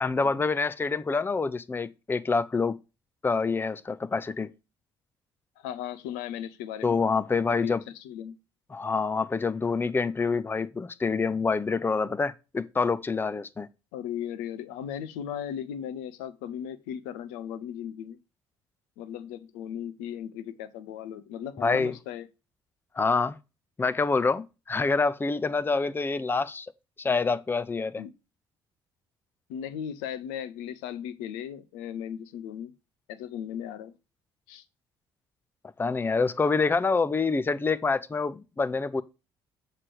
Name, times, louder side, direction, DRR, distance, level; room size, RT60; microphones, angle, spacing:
voice 1, 0.0-2.8 3.2-4.5 6.8-7.8 8.7-13.7 21.6-21.9 23.0-23.4 23.8-26.7 27.0-28.0 35.8-39.0, left 4 dB, 15° left, 0.5 m, -26 dB
voice 2, 5.6-7.0 7.6-8.3 13.9-18.2 19.0-22.3 28.0-28.1 29.5-32.7 33.1-33.9 34.5-34.6, left 9 dB, 70° left, 0.6 m, -37 dB
7.4 x 3.3 x 6.2 m
hypercardioid pair, 50°, 12 cm